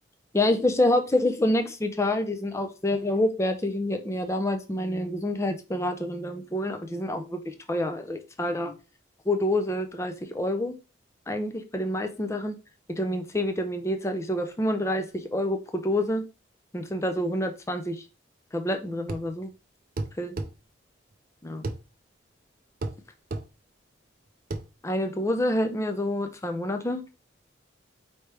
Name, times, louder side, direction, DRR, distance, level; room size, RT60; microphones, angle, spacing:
voice 1, 0.3-8.7 9.3-10.8 11.3-12.6 12.9-16.2 16.7-18.0 18.5-19.5 20.2-20.4 21.4-21.6 24.8-27.0, left 1 dB, 15° left, 6 dB, 0.4 m, -27 dB
sound 1, 19.1-19.3 20.0-20.5 21.6-21.8 22.8-23.0 23.3-23.5 24.5-24.7, right 2 dB, 45° right, 0.5 m, -31 dB
4.6 x 2.8 x 3.3 m, 0.31 s
head